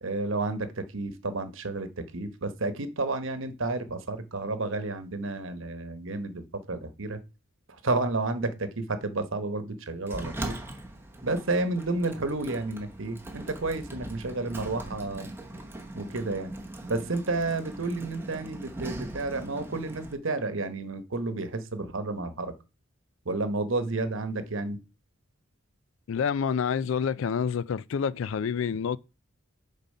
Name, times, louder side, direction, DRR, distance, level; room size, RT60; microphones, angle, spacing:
voice 1, 0.0-7.2 7.7-10.6 11.2-15.3 15.9-16.5 16.9-22.5 23.2-24.8, right 2 dB, 70° right, 1.0 m, -31 dB
Sliding door, 10.1-20.1, right 1 dB, 10° right, 0.9 m, -40 dB
voice 2, 26.1-29.0, left 6 dB, 70° left, 0.4 m, -28 dB
7.1 x 4.1 x 5.4 m
head